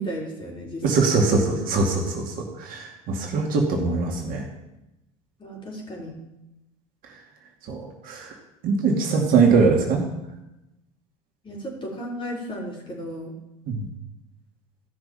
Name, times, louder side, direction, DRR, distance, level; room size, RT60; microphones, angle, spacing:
voice 1, 0.0-0.8 5.4-6.1 11.4-13.3, right 1 dB, 25° left, -3 dB, 4.6 m, -34 dB
voice 2, 0.8-4.4 7.7-8.3 8.6-10.0 13.7-13.9, right 4 dB, 50° right, 2 dB, 2.2 m, -22 dB
15.5 x 6.2 x 5.6 m, 0.92 s
hypercardioid pair, 75°, 19 cm